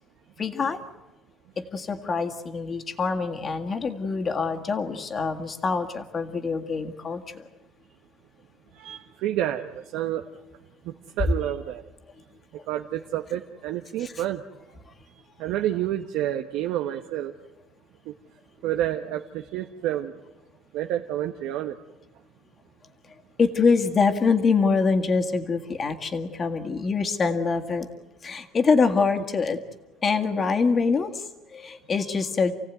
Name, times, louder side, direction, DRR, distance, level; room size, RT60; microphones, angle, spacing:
voice 1, 0.4-0.8 1.6-7.5 14.0-14.1 23.4-27.9 28.2-29.6 30.0-32.5, left 4 dB, 25° left, 1.9 m, -25 dB
voice 2, 8.7-10.2 10.8-11.8 12.7-14.4 15.1-15.2 15.4-17.3 18.0-18.1 18.6-20.2 20.7-21.8 32.0-32.2, right 12 dB, 70° right, 1.2 m, -29 dB
28.5 x 17.5 x 9.4 m
cardioid pair, 180°, 0 cm